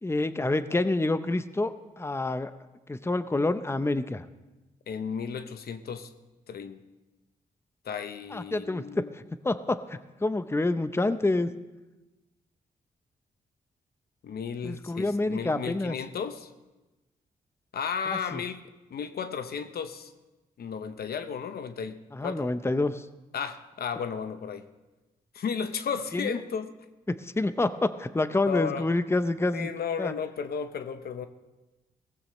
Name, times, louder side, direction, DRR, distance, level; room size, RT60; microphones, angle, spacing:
voice 1, 0.0-2.5 2.9-4.3 8.3-8.8 9.1-11.5 14.6-16.0 18.1-18.4 22.1-23.1 26.1-26.4 27.1-29.7 30.0-30.1, left 2 dB, 15° left, 12 dB, 0.8 m, -28 dB
voice 2, 4.9-6.1 6.5-6.8 7.8-9.1 14.2-16.5 17.7-18.6 18.9-20.1 20.6-22.5 23.3-24.7 25.3-26.7 28.5-28.9 29.5-31.3, left 6 dB, 70° left, 10 dB, 0.9 m, -34 dB
18.0 x 15.0 x 3.2 m, 1.1 s
supercardioid pair, 50°, 17 cm